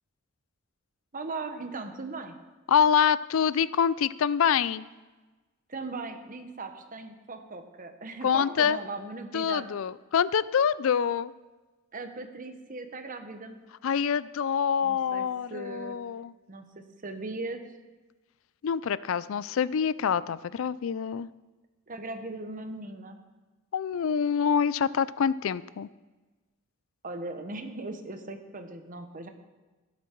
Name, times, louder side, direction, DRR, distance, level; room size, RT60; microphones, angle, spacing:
voice 1, 1.1-2.4 5.7-9.7 11.9-13.6 14.8-16.0 16.5-17.6 21.9-23.2 27.0-29.3, right 3 dB, 40° right, 6 dB, 1.2 m, -38 dB
voice 2, 2.7-4.9 8.2-8.8 9.3-11.3 13.8-16.3 18.6-21.3 23.7-25.9, left 7 dB, 70° left, 18 dB, 0.4 m, -26 dB
17.5 x 8.4 x 4.6 m, 1.2 s
head